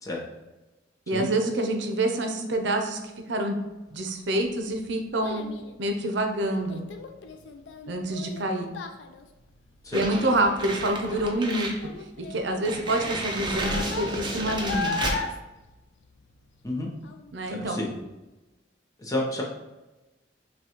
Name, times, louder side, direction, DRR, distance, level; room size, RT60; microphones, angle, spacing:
voice 1, 1.1-3.0 3.3-3.6 3.9-5.4 5.8-6.9 7.9-8.7 9.9-11.7 12.2-15.0 17.3-17.8, right 1 dB, 75° right, 4 dB, 0.6 m, -27 dB
Child speech kid speaking, 4.0-16.7 17.0-17.5 18.0-18.1, left 5 dB, 80° left, 0.4 m, -38 dB
sound 1, 9.9-11.8 12.2-12.3 12.6-15.2, right 2 dB, 25° right, 0.6 m, -32 dB
voice 2, 17.5-17.9 19.0-19.4, left 1 dB, 20° left, -2 dB, 0.7 m, -30 dB
5.8 x 2.3 x 2.9 m, 1.1 s
head